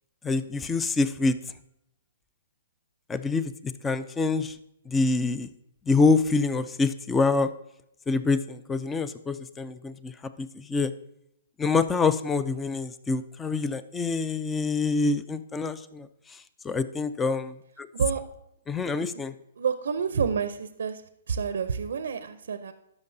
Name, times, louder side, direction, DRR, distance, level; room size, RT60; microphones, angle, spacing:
voice 1, 0.2-1.4 3.1-3.5 3.8-4.6 4.9-5.5 5.9-7.5 8.1-10.1 10.4-10.9 11.6-16.1 16.6-17.9 18.7-19.3, left 4 dB, 10° left, 13 dB, 0.4 m, -26 dB
voice 2, 19.6-21.0 21.3-22.7, right 6 dB, 75° right, 11 dB, 0.5 m, -28 dB
12.5 x 5.9 x 2.7 m, 0.79 s
hypercardioid pair, 150°, 0 cm